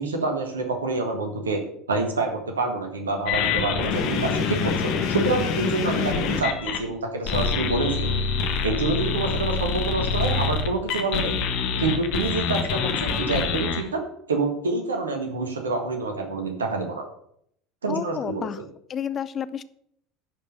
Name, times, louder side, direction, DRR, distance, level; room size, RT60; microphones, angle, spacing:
voice 1, 0.0-1.6 1.9-8.1 8.6-11.4 11.8-14.0 14.3-17.0 17.8-18.5, right 3 dB, 75° right, 4 dB, 1.8 m, -27 dB
sound 1, 3.3-6.8 7.2-13.8, left 5 dB, 55° left, 1.4 m, -25 dB
voice 2, 17.9-18.6 18.9-19.6, left 8 dB, 35° left, 16 dB, 0.5 m, -30 dB
11.0 x 5.3 x 6.6 m, 0.70 s
figure-of-eight pair, 70°, 0 cm